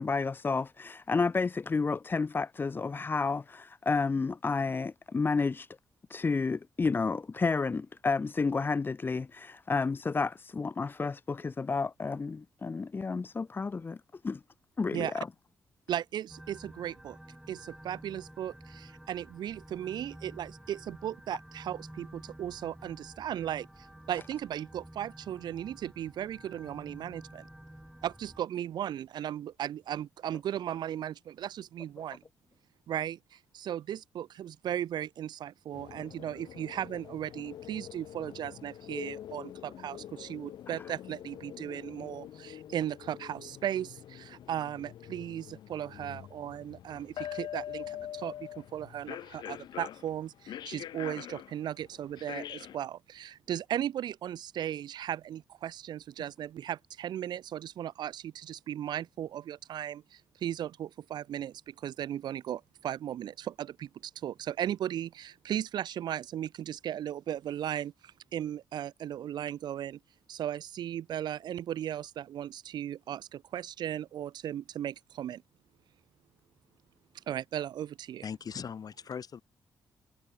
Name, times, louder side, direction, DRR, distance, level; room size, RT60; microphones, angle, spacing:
voice 1, 0.0-5.7 6.1-14.0 14.2-14.4 14.8-15.3, left 4 dB, 30° left, 0.4 m, -31 dB
voice 2, 14.9-15.2 15.9-17.2 17.5-27.4 28.0-32.2 32.9-70.0 70.3-75.4 77.3-78.2, right 11 dB, 70° right, 1.2 m, -36 dB
sound 1, 16.3-28.4, right 1 dB, 5° right, 7.5 m, -51 dB
sound 2, 35.7-52.8, left 11 dB, 75° left, 3.3 m, -44 dB
voice 3, 78.2-79.4, left 7 dB, 55° left, 4.1 m, -39 dB
supercardioid pair, 50°, 8 cm